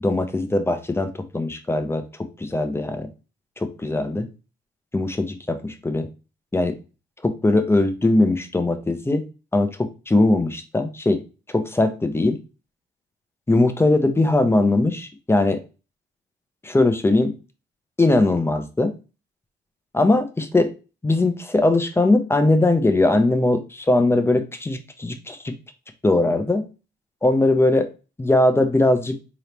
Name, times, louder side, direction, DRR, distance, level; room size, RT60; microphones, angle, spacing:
voice 1, 0.0-2.0 2.4-3.1 3.6-4.3 4.9-6.1 6.5-6.7 7.2-9.2 9.5-11.2 11.5-12.4 13.5-15.6 16.6-17.3 18.0-18.9 19.9-20.7 21.0-25.5 26.0-26.6 27.2-27.9 28.2-29.2, left 2 dB, 10° left, 9 dB, 0.6 m, -20 dB
3.8 x 3.0 x 3.3 m, 0.31 s
cardioid pair, 90°, 20 cm